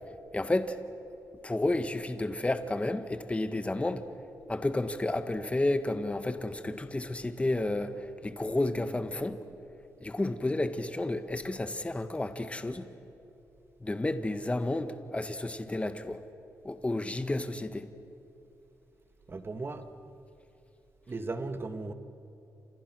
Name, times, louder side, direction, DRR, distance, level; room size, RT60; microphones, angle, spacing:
voice 1, 0.3-0.8 1.4-4.0 4.5-9.4 10.0-12.9 13.8-16.2 16.6-17.8, left 2 dB, 20° left, 9 dB, 1.6 m, -31 dB
voice 2, 19.3-19.8 21.1-21.9, right 3 dB, 35° right, 8 dB, 1.9 m, -36 dB
29.5 x 27.0 x 6.3 m, 2.8 s
cardioid pair, 70°, 6 cm